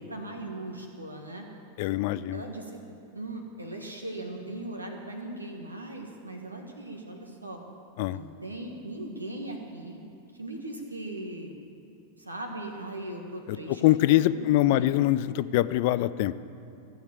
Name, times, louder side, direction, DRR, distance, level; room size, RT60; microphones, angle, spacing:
voice 1, 0.0-1.4 2.3-2.8 3.1-7.6 8.1-10.0 10.3-11.5 12.2-14.2 14.5-15.0, right 1 dB, 80° right, 2 dB, 1.6 m, -39 dB
voice 2, 1.8-2.4 8.0-8.2 13.5-16.4, left 15 dB, 50° left, 16 dB, 0.4 m, -24 dB
15.0 x 7.2 x 8.1 m, 2.6 s
figure-of-eight pair, 90°, 0 cm